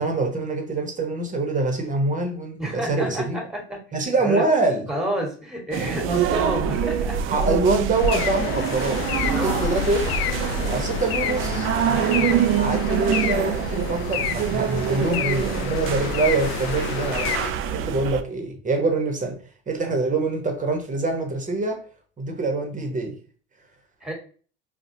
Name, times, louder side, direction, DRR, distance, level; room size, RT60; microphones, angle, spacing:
voice 1, 0.0-3.4 3.9-4.9 7.3-10.0 10.7-11.7 12.5-17.4 17.7-19.4 19.7-21.8 22.2-23.2, right 3 dB, 25° right, 3 dB, 1.0 m, -25 dB
voice 2, 2.6-4.5 4.9-7.2 9.2-9.7 11.8-12.6 19.8-19.9 24.0-24.1, right 1 dB, ahead, 0 dB, 1.4 m, -30 dB
sound 1, 5.7-18.2, right 8 dB, 45° right, 0.4 m, -25 dB
sound 2, 8.0-17.5, left 8 dB, 90° left, 0.4 m, -29 dB
4.1 x 2.3 x 2.7 m, 0.41 s
hypercardioid pair, 80°, 30 cm